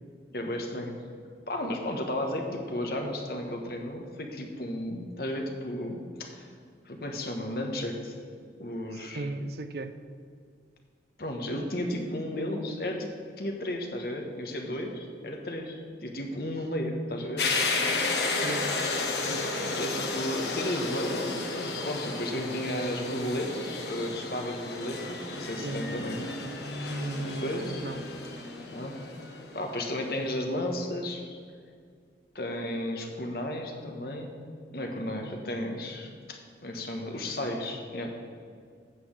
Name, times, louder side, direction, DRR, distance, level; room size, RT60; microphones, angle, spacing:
voice 1, 0.3-0.9 1.5-6.5 6.8-8.1 8.6-9.3 11.2-13.1 13.4-17.5 19.6-27.9 28.7-28.9 29.5-31.2 32.3-34.4 34.7-38.1, left 1 dB, 55° left, 3 dB, 1.2 m, -34 dB
voice 2, 8.9-10.0 18.4-18.8 19.3-19.5 25.6-25.8 26.9-28.1, right 2 dB, 60° right, 11 dB, 0.5 m, -37 dB
sound 1, 17.4-30.1, left 3 dB, 75° left, 1.2 m, -33 dB
8.3 x 6.1 x 7.4 m, 2.1 s
head